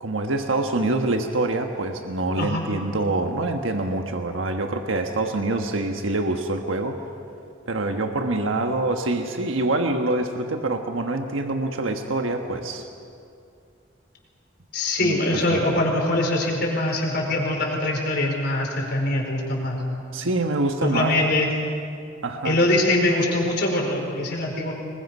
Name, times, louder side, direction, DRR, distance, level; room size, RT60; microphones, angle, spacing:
voice 1, 0.0-7.0 7.7-12.9 15.0-15.2 15.5-15.6 20.1-21.2 22.2-22.6, right 2 dB, 90° right, 4 dB, 1.3 m, -25 dB
voice 2, 14.7-19.8 20.8-21.5 22.4-24.7, left 1 dB, 55° left, 0 dB, 4.7 m, -23 dB
26.0 x 21.5 x 5.5 m, 2.4 s
head